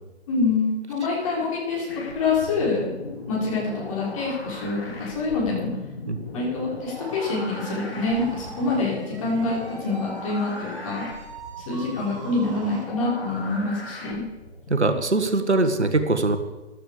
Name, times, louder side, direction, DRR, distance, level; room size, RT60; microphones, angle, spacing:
voice 1, 0.3-2.9 3.3-5.7 6.3-11.1 11.7-14.2, left 3 dB, 30° left, -4 dB, 5.0 m, -26 dB
sound 1, 1.9-15.0, left 3 dB, 60° left, 3.3 m, -38 dB
sound 2, 7.0-12.9, right 4 dB, 25° right, 1.7 m, -41 dB
voice 2, 14.7-16.4, right 2 dB, 75° right, 8 dB, 1.5 m, -22 dB
15.5 x 11.5 x 4.9 m, 1.1 s
figure-of-eight pair, 140°, 34 cm